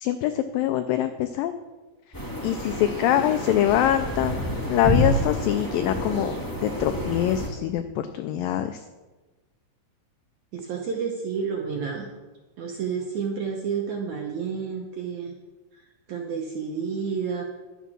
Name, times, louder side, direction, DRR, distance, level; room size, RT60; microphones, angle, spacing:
voice 1, 0.0-1.5 2.4-6.3 6.6-8.8, left 11 dB, 85° left, 9 dB, 2.0 m, -24 dB
sound 1, 2.1-7.5, equal, 15° left, 0.7 m, -28 dB
voice 2, 10.5-12.1 12.6-15.3 16.1-17.4, right 6 dB, 75° right, 1 dB, 1.8 m, -30 dB
11.0 x 8.2 x 6.0 m, 1.2 s
omnidirectional pair, 4.6 m